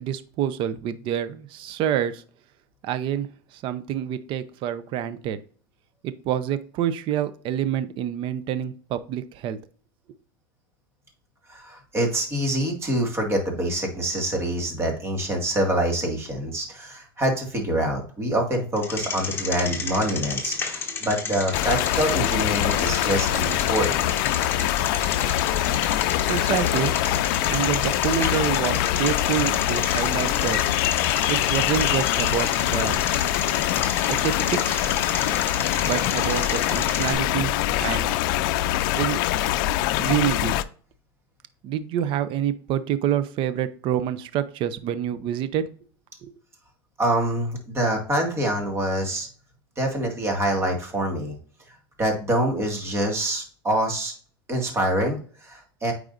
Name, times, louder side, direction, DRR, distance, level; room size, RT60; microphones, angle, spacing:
voice 1, 0.0-2.2 2.8-5.4 6.0-9.6 26.3-26.9 27.5-30.6 31.3-33.0 34.1-35.0 35.9-37.5 37.8-38.2 38.9-39.2 40.0-40.6 41.6-45.6 46.2-46.3, right 10 dB, 45° right, 13 dB, 0.6 m, -27 dB
voice 2, 11.5-24.0 47.0-49.3 49.8-51.4 52.0-54.1 54.5-55.9, right 1 dB, 20° right, 2 dB, 2.1 m, -25 dB
Bicycle, 18.8-37.1, left 5 dB, 20° left, 1.4 m, -32 dB
sound 1, 21.5-40.6, left 14 dB, 60° left, 0.4 m, -24 dB
8.7 x 4.8 x 2.6 m, 0.44 s
supercardioid pair, 130°, 12 cm